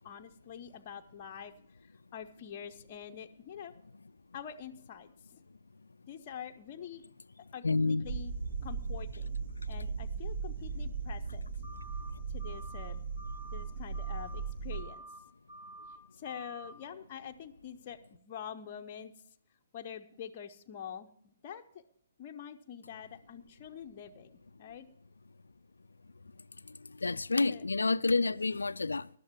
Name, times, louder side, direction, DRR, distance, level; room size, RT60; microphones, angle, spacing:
voice 1, 0.0-1.5 1.8-3.7 4.3-5.4 6.1-7.0 7.5-8.3 8.6-9.4 9.7-11.4 12.3-13.0 13.5-15.0 16.1-19.1 19.7-21.8 22.2-24.9 27.5-27.6, left 8 dB, 35° left, 0.7 m, -46 dB
voice 2, 7.6-8.0 26.7-29.1, left 3 dB, 70° left, 0.4 m, -29 dB
sound 1, 8.0-14.8, right 5 dB, 50° right, 1.0 m, -38 dB
sound 2, 11.6-12.1 12.4-12.9 13.2-13.6 13.9-14.4 14.7-15.2 15.5-16.0 16.2-16.7, right 2 dB, 10° right, 2.4 m, -49 dB
18.5 x 12.0 x 2.9 m
figure-of-eight pair, 130°, 0 cm